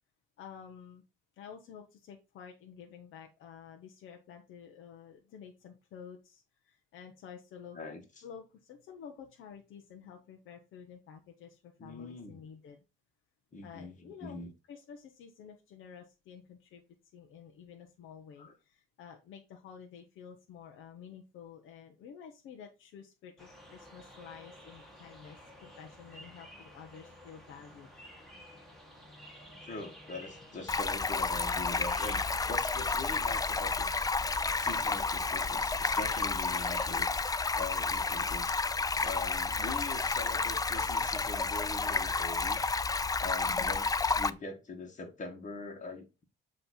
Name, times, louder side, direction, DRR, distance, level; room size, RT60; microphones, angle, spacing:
voice 1, 0.4-1.0 1.4-7.8 8.2-12.8 13.6-14.4 14.7-16.8 17.1-27.9 43.4-43.8, left 7 dB, 85° left, 0.9 m, -50 dB
voice 2, 7.7-8.2 11.8-12.4 13.5-14.5 18.4-18.5 29.6-32.2 32.5-34.1 34.6-37.2 37.5-38.6 39.0-42.6 43.2-46.2, left 3 dB, 40° left, 1.9 m, -43 dB
sound 1, 23.4-36.9, equal, ahead, 2.3 m, -53 dB
Stream, 30.7-44.3, left 4 dB, 20° left, 0.4 m, -31 dB
7.8 x 3.3 x 4.3 m
cardioid pair, 90°, 20 cm